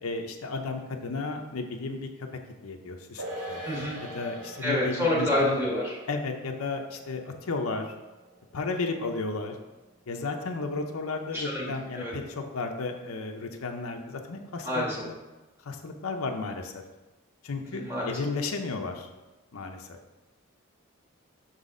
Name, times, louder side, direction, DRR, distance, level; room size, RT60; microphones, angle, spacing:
voice 1, 0.0-2.3 2.6-3.7 4.0-5.6 6.1-7.9 8.5-9.6 10.1-15.1 15.6-16.8 17.4-19.1 19.5-19.9, left 3 dB, 80° left, 4 dB, 0.7 m, -33 dB
sound 1, 3.2-9.8 10.1-10.2, right 1 dB, 90° right, 1.3 m, -43 dB
voice 2, 3.6-4.0 4.6-6.0 11.3-11.7 11.9-12.1 14.6-15.0 17.7-18.1, left 1 dB, 10° right, -5 dB, 1.6 m, -27 dB
6.3 x 4.1 x 5.0 m, 1.1 s
head